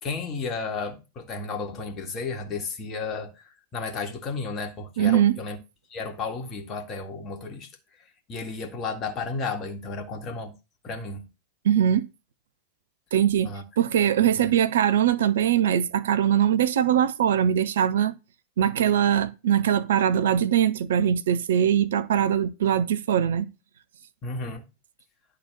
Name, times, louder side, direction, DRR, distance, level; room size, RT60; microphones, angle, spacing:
voice 1, 0.0-5.6 5.9-7.7 8.3-10.5 10.8-11.3 13.4-13.6 14.4-14.5 24.2-24.7, left 4 dB, 30° left, 2.0 m, -33 dB
voice 2, 5.0-5.4 11.6-12.0 13.1-18.1 18.6-23.5, right 9 dB, 60° right, 0.6 m, -22 dB
11.0 x 3.9 x 6.7 m
figure-of-eight pair, 90°, 0 cm